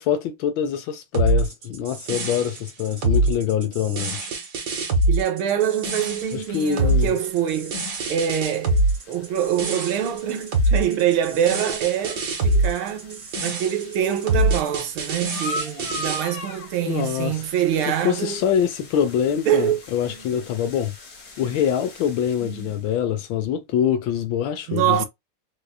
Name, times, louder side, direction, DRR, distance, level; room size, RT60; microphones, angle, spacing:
voice 1, 0.0-4.3 6.3-7.1 16.8-17.5 17.8-20.9 21.4-25.0, left 9 dB, 75° left, 1.2 m, -24 dB
sound 1, 1.1-16.2, right 2 dB, 55° right, 1.5 m, -24 dB
voice 2, 5.1-18.4 19.5-19.8 20.1-20.5 21.4-21.5 22.4-22.7 24.7-25.1, right 10 dB, 75° right, 1.4 m, -25 dB
sound 2, 6.0-22.9, left 2 dB, 50° left, 1.3 m, -41 dB
4.7 x 2.3 x 2.2 m
omnidirectional pair, 2.4 m